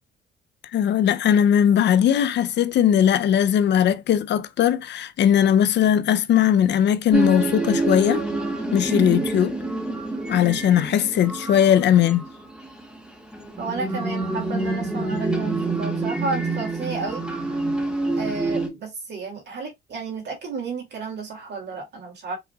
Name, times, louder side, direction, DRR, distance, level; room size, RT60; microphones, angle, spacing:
voice 1, 0.7-8.3 8.7-9.6 10.3-12.2, left 9 dB, 65° left, 0.5 m, -19 dB
sound 1, 7.1-18.7, right 2 dB, 5° right, 1.9 m, -27 dB
voice 2, 13.6-17.2 18.2-22.4, right 4 dB, 60° right, 2.4 m, -32 dB
4.9 x 3.8 x 2.3 m
cardioid pair, 90°, 20 cm